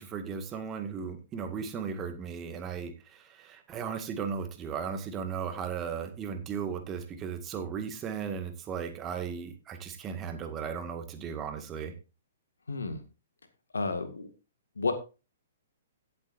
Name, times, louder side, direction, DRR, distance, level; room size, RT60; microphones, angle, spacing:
voice 1, 0.0-11.9, right 6 dB, 20° right, 7 dB, 1.9 m, -36 dB
voice 2, 12.7-13.0 13.7-14.3 14.8-14.9, left 3 dB, 70° left, 8 dB, 1.9 m, -31 dB
17.5 x 7.8 x 2.6 m, 0.30 s
figure-of-eight pair, 115°, 0 cm